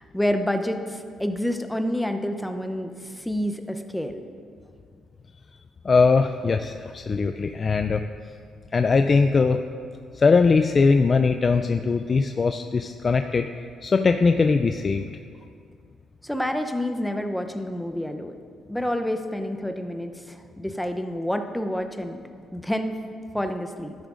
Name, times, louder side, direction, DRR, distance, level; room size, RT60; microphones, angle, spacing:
voice 1, 0.0-4.2 16.2-18.4 18.7-22.2 22.5-23.0 23.3-23.9, left 1 dB, 5° left, 6 dB, 0.6 m, -28 dB
voice 2, 5.8-8.0 8.7-9.6 10.1-13.5 13.8-15.1, left 4 dB, 40° left, 6 dB, 0.3 m, -20 dB
13.0 x 10.0 x 2.5 m, 2.3 s
cardioid pair, 90°, 0 cm